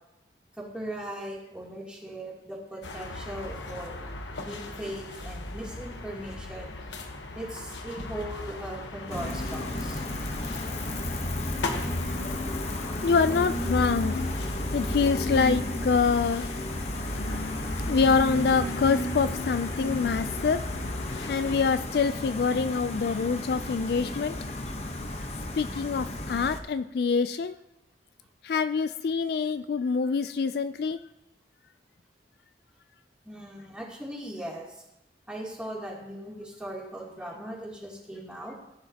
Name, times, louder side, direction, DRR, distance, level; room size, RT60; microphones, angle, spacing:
voice 1, 0.5-4.0 4.4-6.8 7.3-10.0 33.2-34.8 35.3-38.6, right 1 dB, 5° right, -5 dB, 2.9 m, -39 dB
sound 1, 2.8-21.7, left 2 dB, 80° left, 1.2 m, -38 dB
Gull seagull, 9.1-26.6, left 1 dB, 35° left, 1.0 m, -33 dB
voice 2, 13.0-14.2 14.7-16.5 17.9-20.6 21.3-24.4 25.6-27.5 28.4-31.0, left 5 dB, 60° left, 12 dB, 0.3 m, -25 dB
17.0 x 10.5 x 2.9 m, 0.90 s
head